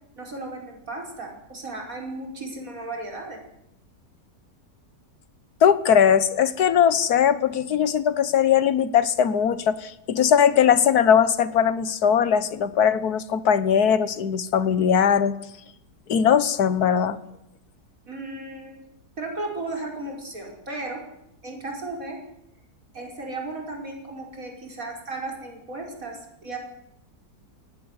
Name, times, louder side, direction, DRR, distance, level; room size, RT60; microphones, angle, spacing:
voice 1, 0.2-3.4 18.1-18.8 19.2-21.0 21.4-22.2 22.9-26.6, right 2 dB, 50° right, 0 dB, 5.5 m, -35 dB
voice 2, 5.6-15.3 16.1-17.2, left 8 dB, 65° left, 14 dB, 1.7 m, -20 dB
19.0 x 16.5 x 9.7 m, 0.82 s
omnidirectional pair, 1.8 m